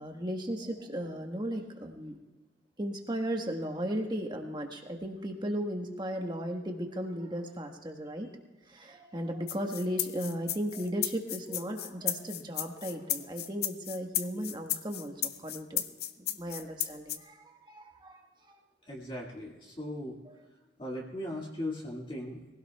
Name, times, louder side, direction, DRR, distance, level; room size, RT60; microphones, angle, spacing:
voice 1, 0.0-2.2 2.8-8.4 8.7-15.8 16.2-18.2 18.5-18.6 20.3-20.4, equal, 25° right, 3 dB, 1.4 m, -36 dB
sound 1, 9.5-17.2, left 12 dB, 55° left, 0.6 m, -34 dB
voice 2, 18.8-20.2 20.8-22.4, left 1 dB, 30° left, -3 dB, 2.1 m, -38 dB
23.0 x 16.5 x 2.3 m, 1.2 s
head